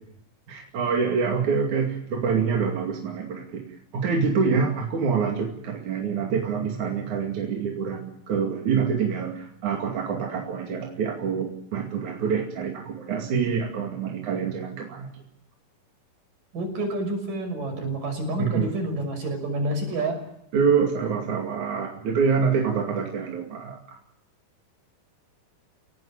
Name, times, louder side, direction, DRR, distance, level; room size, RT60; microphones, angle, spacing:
voice 1, 0.5-3.6 3.9-15.2 18.4-18.7 20.5-24.0, right 6 dB, 65° right, 1 dB, 3.9 m, -26 dB
voice 2, 16.5-20.2, right 1 dB, 85° right, 5 dB, 7.8 m, -28 dB
29.5 x 18.0 x 7.3 m, 0.77 s
omnidirectional pair, 3.8 m